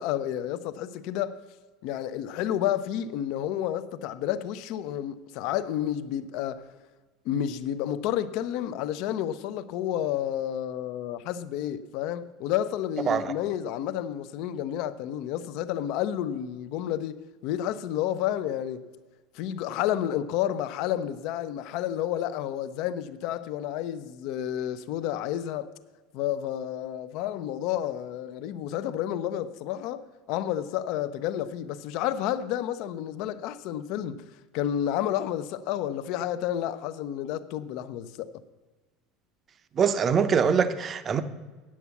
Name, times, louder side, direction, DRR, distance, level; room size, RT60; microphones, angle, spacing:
voice 1, 0.0-1.4 1.8-6.7 7.2-17.2 17.4-18.8 19.3-25.7 26.1-34.2 34.5-38.4, left 11 dB, 60° left, 0.6 m, -30 dB
voice 2, 39.8-41.2, right 6 dB, 25° right, 0.6 m, -23 dB
8.5 x 8.5 x 7.0 m
supercardioid pair, 145°, 0 cm